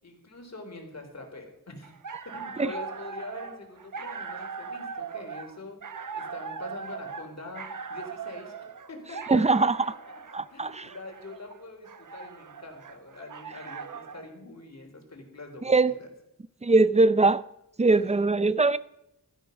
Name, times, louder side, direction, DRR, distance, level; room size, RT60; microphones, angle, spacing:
voice 1, 0.0-1.9 2.3-8.6 8.9-10.2 10.5-16.1 17.9-18.0, left 2 dB, 50° left, 3.8 m, -44 dB
sound 1, 1.8-14.3, right 5 dB, 60° right, 1.0 m, -40 dB
voice 2, 9.3-9.8 10.3-10.9 15.6-15.9 16.6-17.4 17.8-18.8, right 3 dB, 20° right, 0.5 m, -21 dB
15.5 x 13.5 x 5.3 m
wide cardioid pair, 115°, 35 cm